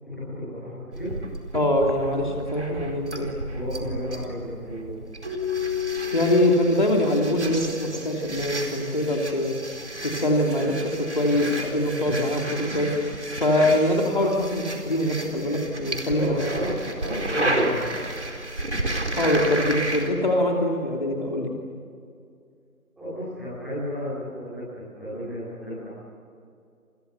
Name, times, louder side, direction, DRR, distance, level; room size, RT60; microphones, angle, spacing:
voice 1, 0.0-1.1 3.5-4.9 16.1-18.1 23.0-25.9, equal, ahead, -16 dB, 3.8 m, -33 dB
sound 1, 0.9-20.1, right 1 dB, 50° right, 4.5 m, -32 dB
voice 2, 1.5-3.3 6.1-9.5 10.0-12.9 13.4-16.5 19.1-21.5, left 1 dB, 30° left, 0 dB, 2.9 m, -23 dB
Keyboard (musical), 5.2-8.1, left 8 dB, 15° right, 3.4 m, -32 dB
29.0 x 29.0 x 6.9 m, 2.3 s
figure-of-eight pair, 170°, 45 cm